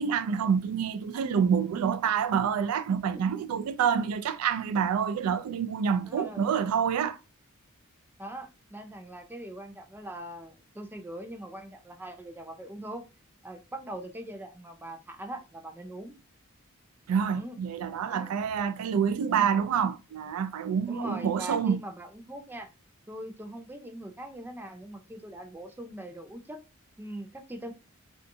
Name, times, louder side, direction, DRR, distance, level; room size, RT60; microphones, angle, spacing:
voice 1, 0.0-7.2 17.1-21.8, right 7 dB, 85° right, 0.3 m, -27 dB
voice 2, 6.1-6.4 8.2-13.1 13.4-16.2 17.3-17.6 18.1-18.3 20.9-22.7 23.1-26.6 27.0-27.7, right 1 dB, 10° right, 0.4 m, -41 dB
2.6 x 2.3 x 2.6 m
head